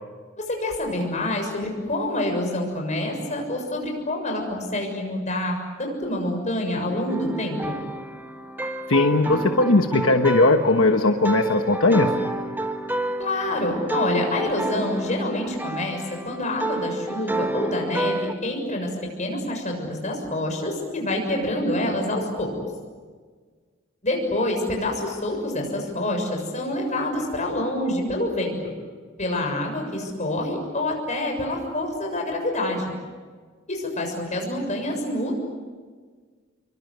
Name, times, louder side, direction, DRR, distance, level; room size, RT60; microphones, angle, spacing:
voice 1, 0.4-7.8 13.2-16.0 16.3-18.9 19.2-22.5 24.0-28.5 29.2-32.9 33.7-35.3, left 1 dB, 35° left, 2 dB, 6.9 m, -27 dB
sound 1, 7.1-18.3, right 1 dB, 10° right, 1.4 m, -29 dB
voice 2, 8.9-12.1, left 2 dB, 75° left, 5 dB, 1.3 m, -18 dB
27.0 x 24.0 x 8.2 m, 1.6 s
head